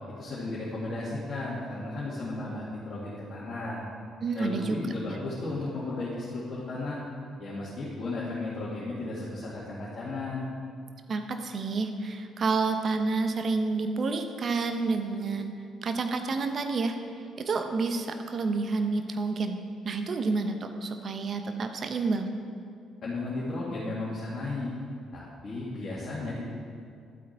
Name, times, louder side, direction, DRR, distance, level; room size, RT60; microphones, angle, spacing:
voice 1, 0.2-3.8 4.3-7.0 7.4-10.5 23.0-24.7 25.1-26.4, left 2 dB, 45° left, -9 dB, 2.4 m, -34 dB
voice 2, 4.2-4.8 11.1-15.5 15.8-17.0 17.4-19.6 19.8-22.3, right 3 dB, 45° right, 6 dB, 1.0 m, -29 dB
12.0 x 8.3 x 4.5 m, 2.3 s
figure-of-eight pair, 45°, 0 cm